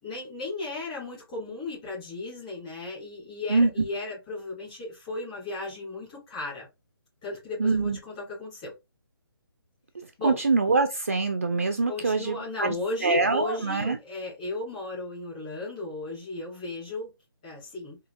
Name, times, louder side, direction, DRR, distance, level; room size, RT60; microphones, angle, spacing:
voice 1, 0.0-6.7 7.2-8.7 10.2-10.4 11.9-17.1 17.4-18.0, left 2 dB, 15° left, 2.6 m, -35 dB
voice 2, 3.5-3.8 7.6-8.0 10.2-12.8 13.0-14.0, right 3 dB, 35° right, 0.4 m, -24 dB
4.9 x 2.8 x 2.4 m
hypercardioid pair, 180°, 13 cm